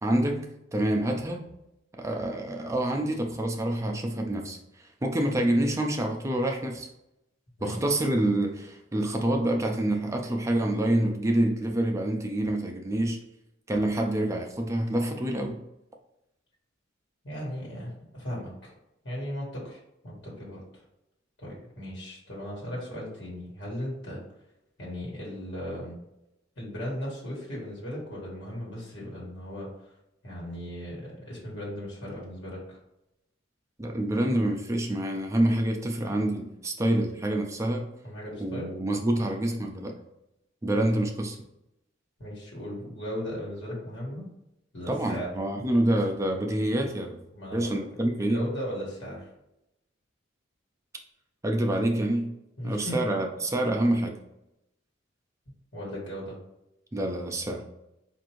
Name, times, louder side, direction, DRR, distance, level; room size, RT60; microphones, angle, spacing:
voice 1, 0.0-1.5 2.0-4.6 5.0-6.9 7.6-13.2 13.7-15.6 33.8-37.9 38.4-40.0 40.6-41.4 44.9-47.2 47.5-48.5 51.4-52.3 52.6-54.2 56.9-57.6, right 1 dB, 15° right, 2 dB, 0.4 m, -27 dB
voice 2, 17.2-18.7 19.0-20.8 21.4-24.2 24.8-26.0 26.5-29.9 30.2-32.8 38.0-38.7 42.2-44.3 44.7-45.3 47.3-49.3 52.6-53.0 55.7-56.4, equal, 60° left, -4 dB, 1.5 m, -37 dB
4.4 x 2.5 x 3.0 m, 0.87 s
head